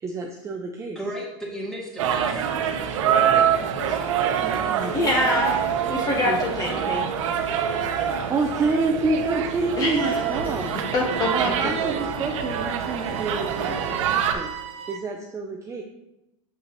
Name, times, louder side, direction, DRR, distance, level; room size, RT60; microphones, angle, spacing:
voice 1, 0.0-1.0 4.4-5.1 5.8-5.9 6.2-6.4 8.1-10.7 11.3-14.5 14.9-15.8, right 3 dB, 20° right, 2 dB, 0.5 m, -28 dB
voice 2, 1.0-2.5, equal, 5° left, -3 dB, 2.0 m, -35 dB
sound 1, 2.0-14.3, right 8 dB, 75° right, 0.9 m, -25 dB
voice 3, 4.9-5.5 5.9-7.0 9.8-10.0 10.9-11.5, left 1 dB, 20° left, -1 dB, 1.0 m, -24 dB
sound 2, 10.0-15.0, right 10 dB, 40° right, 0.9 m, -37 dB
6.9 x 6.2 x 3.0 m, 0.93 s
supercardioid pair, 125°, 16 cm